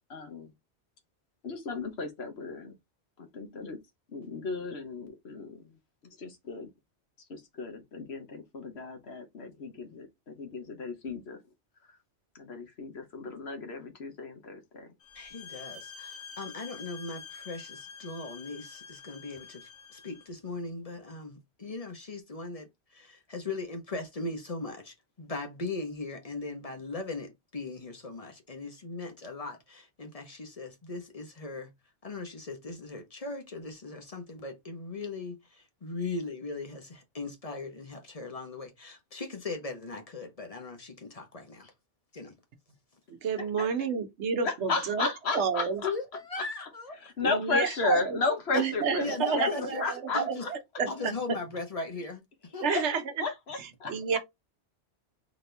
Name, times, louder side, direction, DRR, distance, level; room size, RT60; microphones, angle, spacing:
voice 1, 0.1-0.5 1.4-2.7 3.2-3.8 4.1-6.7 7.2-11.4 11.8-12.0 12.3-15.0 43.4-43.7 44.4-46.0 46.4-46.5 46.9-50.9 52.4-52.9 53.2-54.2, left 4 dB, 65° left, 1.2 m, -34 dB
sound 1, 15.0-20.3, left 6 dB, 85° left, 1.9 m, -47 dB
voice 2, 15.1-31.7 32.0-41.7 42.1-42.3 45.8-47.0 48.5-48.6 49.0-49.8 50.1-50.4 50.9-52.2 52.5-53.0, left 3 dB, 35° left, 0.9 m, -38 dB
voice 3, 43.2-45.1 45.3-45.8 47.2-48.2 48.5-51.4 52.6-53.0 53.9-54.2, right 6 dB, 80° right, 1.1 m, -30 dB
4.0 x 2.8 x 3.3 m
omnidirectional pair, 1.2 m